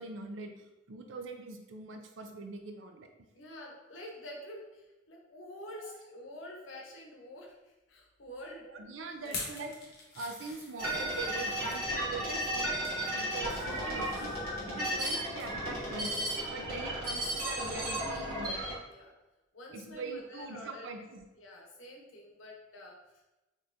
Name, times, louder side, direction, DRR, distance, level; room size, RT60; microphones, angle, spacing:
voice 1, 0.0-3.1 5.8-6.1 8.6-9.7 10.1-14.3 14.7-16.2 16.5-18.6 19.7-21.2, right 3 dB, 75° right, 5 dB, 0.5 m, -43 dB
voice 2, 3.3-8.7 9.2-9.4 18.9-19.1 19.5-20.9 21.4-23.0, left 1 dB, 90° left, -1 dB, 0.9 m, -47 dB
sound 1, 9.2-11.8 12.4-13.0 13.4-15.1 15.4-15.6 16.0-16.1, left 3 dB, 55° left, 0.8 m, -46 dB
sound 2, 10.8-18.8, right 1 dB, 55° right, 1.3 m, -34 dB
4.1 x 3.0 x 2.5 m, 1.0 s
head